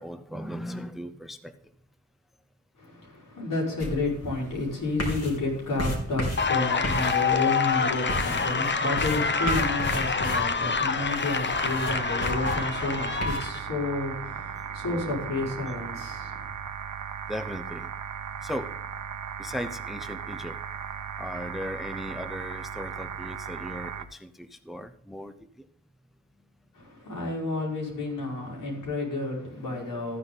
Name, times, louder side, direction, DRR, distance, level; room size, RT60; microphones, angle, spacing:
voice 1, 0.0-1.6 17.3-17.9 18.4-18.8 19.4-20.6 21.2-25.4 28.6-28.8 29.6-29.9, equal, ahead, 0.6 m, -37 dB
voice 2, 2.8-16.5 26.7-30.2, left 2 dB, 80° left, 5.4 m, -31 dB
sound 1, 3.8-13.4, equal, 50° left, 3.4 m, -35 dB
sound 2, 6.4-13.6, left 5 dB, 35° left, 0.9 m, -27 dB
sound 3, 11.5-24.0, right 7 dB, 65° right, 1.1 m, -37 dB
14.0 x 9.5 x 3.9 m
wide cardioid pair, 130°, 32 cm